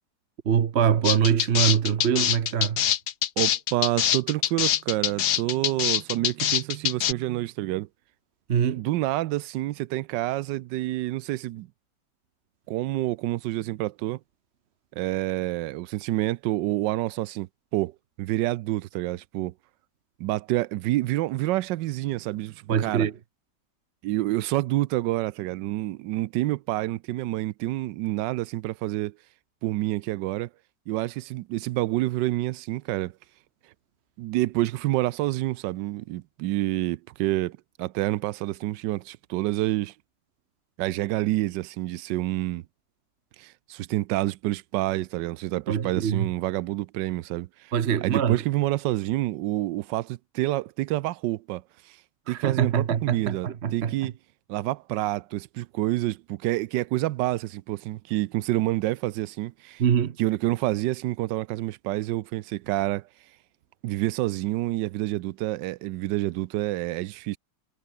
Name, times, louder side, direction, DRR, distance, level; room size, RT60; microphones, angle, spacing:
voice 1, 0.4-2.8 8.5-8.8 22.7-23.1 45.7-46.3 47.7-48.4 52.3-53.9 59.8-60.2, right 8 dB, 45° right, 1.0 m, -24 dB
sound 1, 1.0-7.1, left 10 dB, 65° left, 1.5 m, -24 dB
voice 2, 3.4-7.9 8.7-11.7 12.7-14.2 15.0-17.9 18.2-19.5 20.2-23.1 24.0-29.1 29.6-30.5 30.9-33.1 34.2-39.9 40.8-42.6 43.4-47.7 48.0-51.6 52.3-54.1 54.5-59.8 60.2-63.0 63.8-67.4, right 16 dB, 85° right, 1.3 m, -28 dB
omnidirectional pair, 1.9 m